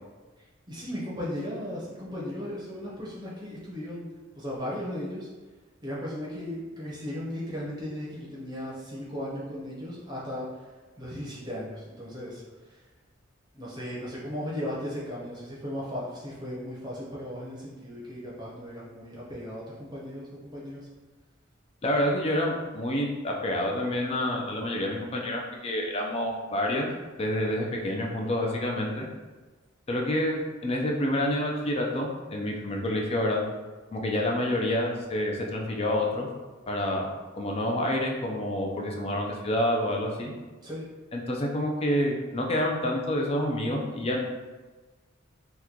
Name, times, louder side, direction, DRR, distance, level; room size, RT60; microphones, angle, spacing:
voice 1, 0.7-4.1 4.3-5.3 5.8-10.7 11.0-12.8 13.5-20.9 40.6-40.9, equal, 20° right, -7 dB, 0.7 m, -36 dB
voice 2, 21.8-26.9 27.2-29.1 29.9-33.4 33.9-36.3 36.7-40.3 41.1-44.2, left 1 dB, 30° left, 0 dB, 0.4 m, -28 dB
2.9 x 2.2 x 3.6 m, 1.3 s
head